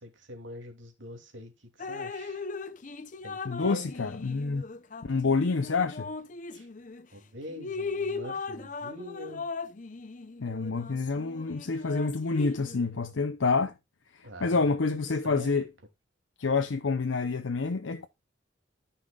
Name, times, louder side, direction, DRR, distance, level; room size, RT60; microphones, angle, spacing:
voice 1, 0.0-2.5 3.2-3.9 6.5-6.7 7.1-9.4 14.2-15.7, equal, 80° right, 2.7 m, -44 dB
Drip, 1.8-7.0 7.5-12.8, left 4 dB, 40° left, 0.7 m, -38 dB
voice 2, 3.5-4.7 5.0-6.1 10.4-13.7 14.1-15.7 16.4-18.1, left 4 dB, 85° left, 0.7 m, -28 dB
13.5 x 5.7 x 2.4 m
head